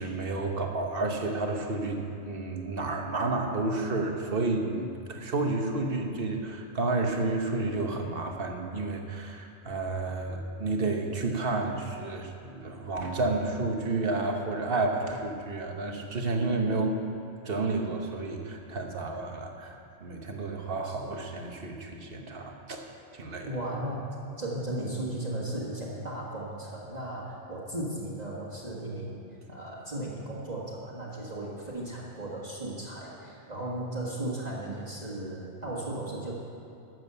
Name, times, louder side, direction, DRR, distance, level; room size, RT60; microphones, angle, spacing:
voice 1, 0.0-17.0 17.4-22.8 23.1-23.5, right 2 dB, 55° right, 3 dB, 1.3 m, -31 dB
voice 2, 23.5-24.1 24.4-36.3, right 1 dB, 35° right, -6 dB, 1.8 m, -36 dB
12.5 x 7.6 x 6.8 m, 2.7 s
omnidirectional pair, 1.2 m